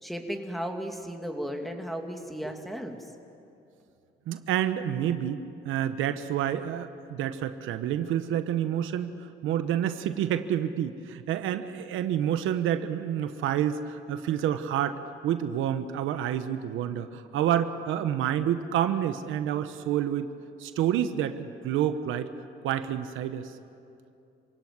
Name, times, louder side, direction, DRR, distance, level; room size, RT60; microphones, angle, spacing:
voice 1, 0.0-3.0, equal, ahead, 4 dB, 2.6 m, -35 dB
voice 2, 4.3-9.1 9.4-20.2 20.6-22.3 22.6-23.5, right 10 dB, 90° right, 10 dB, 1.0 m, -28 dB
27.0 x 17.0 x 9.6 m, 2.6 s
cardioid pair, 90°, 20 cm